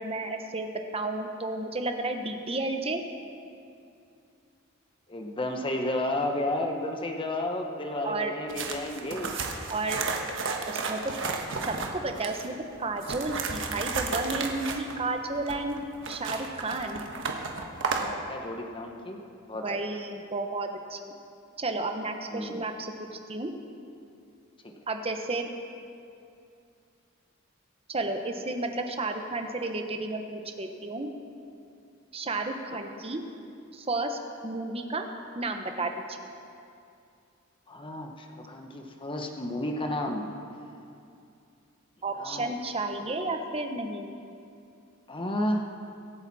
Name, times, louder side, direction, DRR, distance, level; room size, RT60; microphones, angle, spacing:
voice 1, 0.0-3.0 8.0-8.3 9.7-10.0 10.7-11.0 11.7-12.5 12.8-15.8 16.1-17.0 19.6-21.0 21.6-22.9 23.3-23.5 24.9-25.5 27.9-31.1 32.1-33.2 33.7-35.0 35.3-36.2 42.0-44.1, right 2 dB, 25° right, 5 dB, 0.9 m, -32 dB
voice 2, 5.1-9.4 17.9-19.2 19.5-19.7 22.3-22.6 24.6-24.7 37.7-40.3 42.2-42.5 45.1-45.6, left 1 dB, 25° left, 3 dB, 1.0 m, -32 dB
sound 1, 8.5-12.5 13.0-18.1, right 4 dB, 60° right, 1.2 m, -33 dB
23.0 x 9.0 x 4.2 m, 2.5 s
head